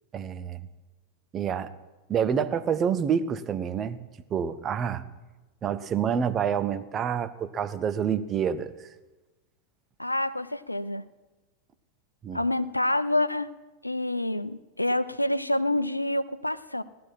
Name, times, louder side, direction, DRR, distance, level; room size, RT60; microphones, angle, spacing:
voice 1, 0.1-0.6 1.3-1.7 2.1-4.0 4.3-5.1 5.6-8.9 12.2-12.4, right 7 dB, 25° right, 10 dB, 0.8 m, -28 dB
voice 2, 10.0-11.0 12.3-13.5 13.8-16.8, left 1 dB, 85° left, 15 dB, 0.5 m, -27 dB
17.5 x 11.5 x 5.9 m, 1.2 s
figure-of-eight pair, 90°, 0 cm